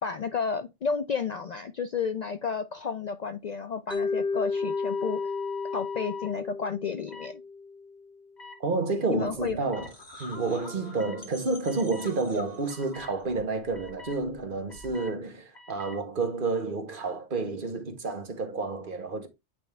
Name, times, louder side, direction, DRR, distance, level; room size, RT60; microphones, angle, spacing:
voice 1, 0.0-5.3 5.7-7.4 9.1-9.6, left 5 dB, 60° left, 0.4 m, -32 dB
Mallet percussion, 3.9-8.0, left 4 dB, 5° left, 0.7 m, -32 dB
sound 1, 4.5-6.3 7.1-7.3 8.4-8.6 9.7-9.9 11.0-11.2 11.7-12.1 12.7-13.1 13.7-14.2 14.7-15.1 15.5-16.0, left 6 dB, 40° left, 1.8 m, -43 dB
voice 2, 8.6-9.9 10.2-19.3, right 3 dB, 50° right, 1.2 m, -30 dB
sound 2, 9.3-15.1, left 2 dB, 20° left, 2.1 m, -48 dB
8.9 x 3.4 x 3.3 m
omnidirectional pair, 1.2 m